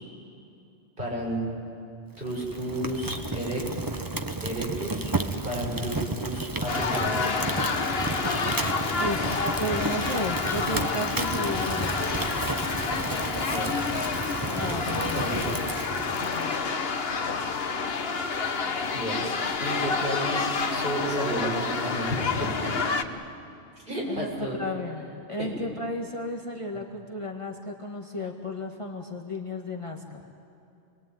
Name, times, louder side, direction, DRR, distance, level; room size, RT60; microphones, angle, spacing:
voice 1, 1.0-1.4 2.2-3.6 4.4-5.1 5.4-7.4 13.5-13.8 15.1-15.8 18.9-19.2 19.6-22.9 23.8-24.6 25.4-25.5, right 1 dB, 50° right, -3 dB, 7.0 m, -32 dB
Fire, 2.2-16.6, right 2 dB, 20° right, 1.0 m, -33 dB
sound 1, 6.7-23.0, left 4 dB, 60° left, 1.4 m, -29 dB
voice 2, 8.9-12.4 14.5-15.2 16.3-16.6 24.1-30.0, left 1 dB, 30° left, 1 dB, 1.8 m, -34 dB
28.0 x 21.5 x 9.3 m, 2.6 s
omnidirectional pair, 1.1 m